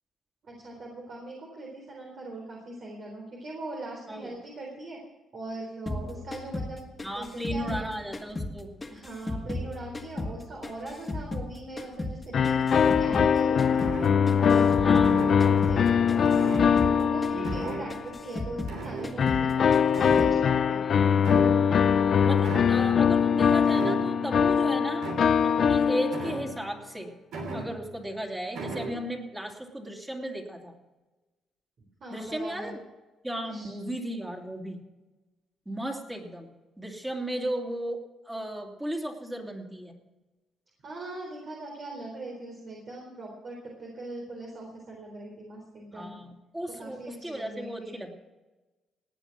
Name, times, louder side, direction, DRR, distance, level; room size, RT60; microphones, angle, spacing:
voice 1, 0.4-5.0 5.3-6.8 7.1-8.1 8.9-13.9 14.4-19.6 20.0-20.9 32.0-32.8 33.4-33.7 40.8-46.1 46.8-48.0, right 2 dB, 55° right, -2 dB, 4.1 m, -41 dB
sound 1, 5.9-8.6 8.8-11.5 11.8-15.1 15.4-15.8 16.1-18.8 19.0-19.5 19.7-20.4, left 2 dB, 20° left, 2.0 m, -35 dB
voice 2, 7.0-8.7 14.8-15.2 17.3-17.7 20.8-21.3 22.2-25.2 25.4-27.1 27.5-30.7 32.1-32.8 33.2-34.8 35.7-36.5 36.8-38.0 38.2-39.9 45.9-48.1, right 1 dB, 10° right, 1 dB, 2.9 m, -35 dB
sound 2, 12.3-18.1 19.2-26.6, left 7 dB, 55° left, 0.6 m, -22 dB
sound 3, 13.8-14.5 15.0-15.7 16.2-17.1 17.4-18.1 18.7-19.6 19.9-20.7 21.2-21.8 22.4-22.9 23.7-24.3 25.0-25.5 26.1-26.8 27.3-28.0 28.5-29.0, right 3 dB, 80° right, 3.2 m, -37 dB
18.0 x 9.2 x 6.0 m, 1.1 s
cardioid pair, 90°, 0 cm